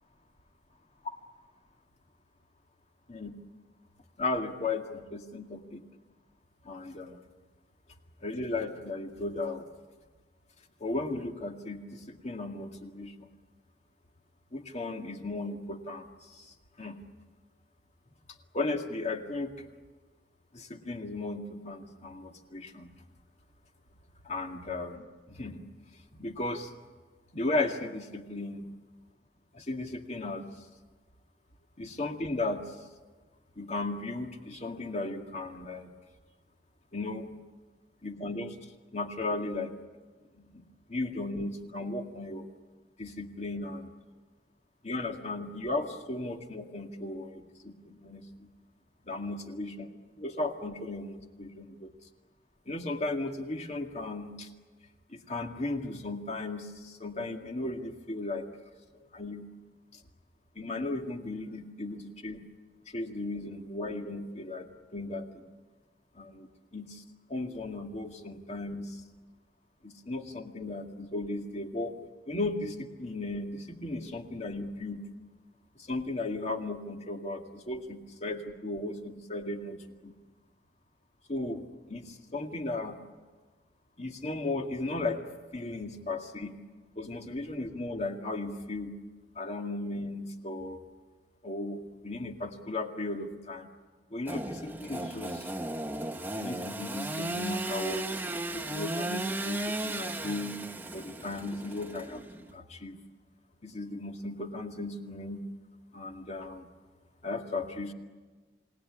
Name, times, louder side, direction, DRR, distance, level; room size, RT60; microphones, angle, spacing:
voice 1, 4.2-5.8 6.6-7.2 8.2-9.6 10.8-13.3 14.5-17.0 18.5-19.6 20.5-22.9 24.2-25.6 26.1-26.7 27.3-28.7 29.5-30.5 31.8-32.8 33.6-35.9 36.9-37.4 38.0-38.6 38.9-39.7 40.3-40.6 40.9-42.5 43.0-43.9 44.8-48.5 49.1-49.9 50.2-51.9 52.7-54.5 55.1-58.5 59.0-59.4 60.6-62.4 62.9-65.5 66.2-67.0 67.3-69.0 69.8-72.0 72.3-75.0 75.8-80.1 81.3-83.0 84.0-85.2 85.5-86.6 87.0-89.0 89.4-90.8 91.4-93.7 94.1-95.5 96.4-98.1 98.5-100.6 100.9-102.2 102.5-103.0 103.6-105.5 105.9-106.7 107.2-107.9, left 2 dB, 40° left, 4 dB, 2.1 m, -36 dB
Engine / Sawing, 94.3-102.5, right 2 dB, 10° right, 1.1 m, -35 dB
28.0 x 19.0 x 9.9 m, 1.3 s
head